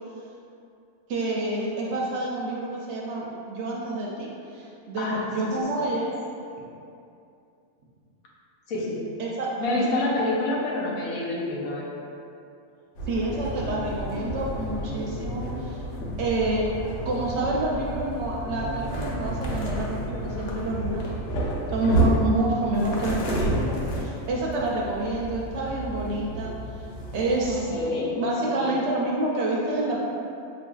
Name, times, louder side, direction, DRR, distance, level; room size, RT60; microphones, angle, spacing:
voice 1, 1.1-6.1 9.2-10.1 13.1-15.8 16.2-21.0 21.7-26.5 27.1-27.7 28.2-30.0, right 2 dB, 65° right, -4 dB, 0.7 m, -28 dB
voice 2, 9.6-11.9 27.5-28.1 28.4-28.7, left 2 dB, 85° left, -4 dB, 1.2 m, -27 dB
sound 1, 13.0-27.6, right 1 dB, 65° left, 0.9 m, -30 dB
5.4 x 2.5 x 2.3 m, 2.6 s
omnidirectional pair, 1.4 m